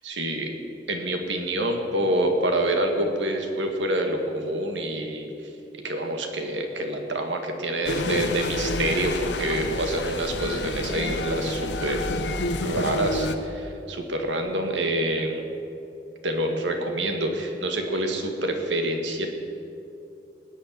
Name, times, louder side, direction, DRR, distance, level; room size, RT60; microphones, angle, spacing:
voice 1, 0.0-0.5 0.9-5.3 5.8-12.1 12.6-15.5 16.2-19.3, right 1 dB, 85° right, 4 dB, 2.0 m, -27 dB
sound 1, 7.9-13.4, left 2 dB, 70° left, 1.0 m, -29 dB
18.5 x 6.7 x 9.5 m, 2.7 s
head